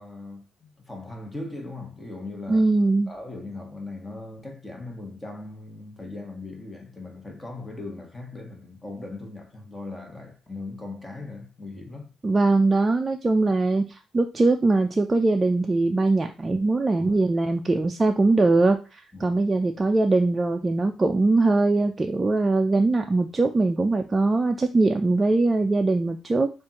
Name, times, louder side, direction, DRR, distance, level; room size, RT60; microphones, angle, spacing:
voice 1, 0.0-2.7 3.1-12.1 16.9-17.2 19.1-19.4, left 2 dB, 15° left, 1.4 m, -39 dB
voice 2, 2.5-3.1 12.2-26.5, right 3 dB, 25° right, 0.4 m, -21 dB
6.8 x 2.6 x 2.9 m
cardioid pair, 90°, 0 cm